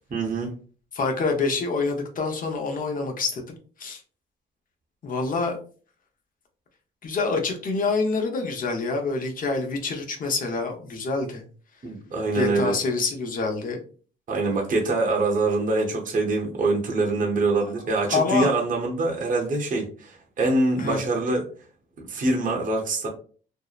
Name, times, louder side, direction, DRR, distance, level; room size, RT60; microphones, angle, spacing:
voice 1, 0.1-0.6 11.8-12.7 14.3-21.4 22.0-23.1, right 2 dB, 45° right, 0 dB, 0.7 m, -24 dB
voice 2, 0.9-4.0 5.0-5.6 7.0-11.4 12.3-13.8 18.1-18.5 20.8-21.0, left 4 dB, 45° left, 3 dB, 0.7 m, -26 dB
2.7 x 2.0 x 2.3 m, 0.40 s
cardioid pair, 90°, 20 cm